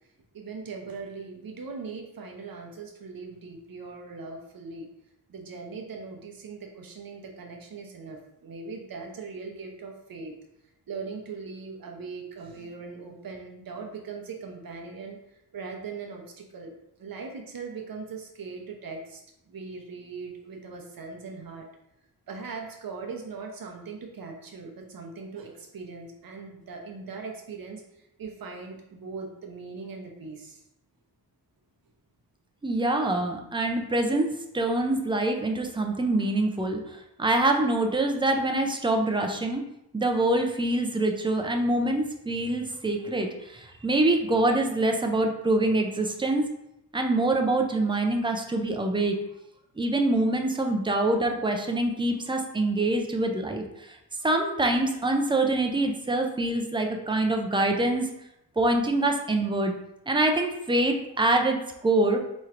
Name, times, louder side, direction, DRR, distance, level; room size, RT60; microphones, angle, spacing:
voice 1, 0.3-4.9 5.3-10.3 10.9-21.7 22.3-30.6, right 4 dB, 60° right, 2 dB, 0.7 m, -40 dB
voice 2, 32.6-39.6 39.9-46.4 46.9-49.2 49.8-54.0 54.2-58.1 58.6-59.7 60.1-62.2, right 2 dB, 15° right, 3 dB, 0.3 m, -25 dB
4.3 x 3.1 x 2.4 m, 0.83 s
wide cardioid pair, 150°, 40 cm